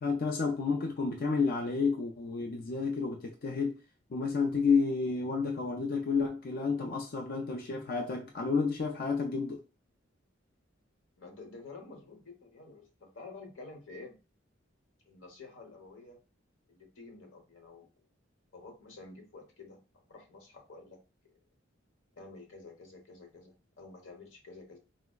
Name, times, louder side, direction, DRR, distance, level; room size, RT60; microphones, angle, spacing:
voice 1, 0.0-3.8 4.1-9.6, left 4 dB, 50° left, 0.4 m, -30 dB
voice 2, 11.2-14.2 15.0-16.2 16.7-17.9 18.5-21.0 22.2-24.8, left 3 dB, 85° left, 1.0 m, -50 dB
4.0 x 2.0 x 2.2 m
head